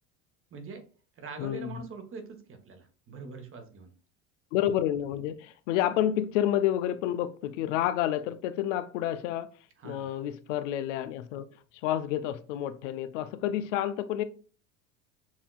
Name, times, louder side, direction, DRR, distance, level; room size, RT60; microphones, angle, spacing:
voice 1, 0.5-0.8 1.2-3.9 9.8-10.2, right 4 dB, 35° right, 1.2 m, -43 dB
voice 2, 1.4-1.9 4.5-9.5 9.8-11.5 11.8-14.2, left 11 dB, 75° left, 0.6 m, -29 dB
7.4 x 2.8 x 2.2 m
supercardioid pair, 95°, 37 cm